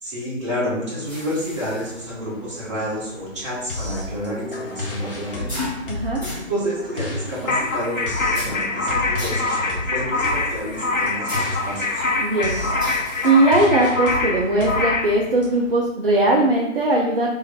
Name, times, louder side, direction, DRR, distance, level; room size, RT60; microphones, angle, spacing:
voice 1, 0.0-5.5 6.2-12.0, equal, 25° right, -7 dB, 1.1 m, -29 dB
sound 1, 0.9-15.8, left 1 dB, 5° left, 0.8 m, -39 dB
sound 2, 3.7-15.5, left 2 dB, 45° left, 0.9 m, -32 dB
voice 2, 5.9-6.2 12.2-12.5 13.2-17.3, right 2 dB, 45° right, -2 dB, 0.6 m, -19 dB
sound 3, 7.5-15.1, left 3 dB, 85° left, 0.8 m, -24 dB
3.2 x 2.9 x 4.0 m, 0.90 s
figure-of-eight pair, 145°, 38 cm